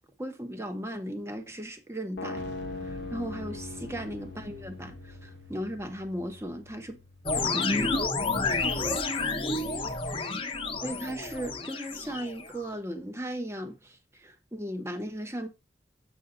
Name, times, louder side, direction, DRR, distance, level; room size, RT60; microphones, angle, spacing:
voice 1, 0.2-2.5 2.8-7.0 7.3-8.1 10.8-15.5, equal, 15° right, 1.0 m, -37 dB
sound 1, 2.2-8.2, left 3 dB, 90° left, 0.8 m, -42 dB
Boom, 2.4-8.2, right 2 dB, 75° right, 0.8 m, -48 dB
voice 2, 3.8-4.2 8.7-10.5, right 1 dB, 40° right, 2.3 m, -48 dB
sound 2, 7.3-12.7, left 3 dB, 30° left, 0.9 m, -30 dB
7.7 x 5.4 x 3.8 m
head